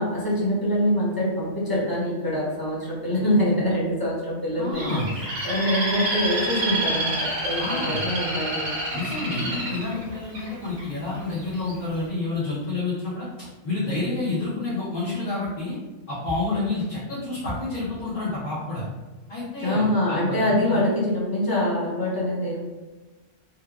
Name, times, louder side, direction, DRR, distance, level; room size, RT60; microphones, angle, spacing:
voice 1, 0.0-5.0 5.4-8.8 19.6-22.6, left 1 dB, 25° left, -7 dB, 0.6 m, -24 dB
voice 2, 4.6-5.1 7.6-8.0 8.9-15.8 16.1-18.8 19.3-20.8, left 2 dB, 50° left, -10 dB, 0.9 m, -29 dB
Bird, 4.7-10.8 11.4-11.8, right 1 dB, 60° right, 1.0 m, -28 dB
3.1 x 2.2 x 2.3 m, 1.2 s
omnidirectional pair, 1.2 m